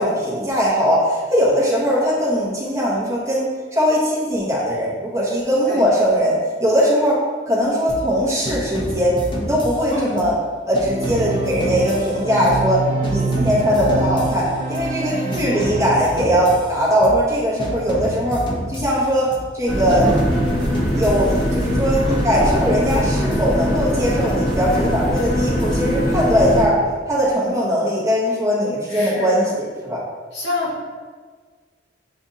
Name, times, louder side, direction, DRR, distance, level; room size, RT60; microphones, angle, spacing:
voice 1, 0.0-7.2 7.5-9.1 9.4-10.3 10.6-18.4 18.7-19.3 19.5-20.1 21.0-26.8 27.1-30.0, equal, 15° right, -7 dB, 1.0 m, -20 dB
sound 1, 7.9-8.2 8.5-10.4 10.7-12.8 13.0-15.0 15.3-17.3 17.6-19.5 19.9-21.9 22.2-24.1 24.5-26.1, equal, 25° left, 0.5 m, -31 dB
Organ, 10.9-16.6, right 3 dB, 45° right, 0.5 m, -26 dB
voice 2, 15.1-15.8 22.0-22.2 28.9-29.5 30.3-30.8, left 2 dB, 70° left, -5 dB, 1.3 m, -28 dB
sound 2, 19.7-26.6, equal, 5° left, 1.1 m, -21 dB
7.3 x 2.5 x 2.7 m, 1.5 s
head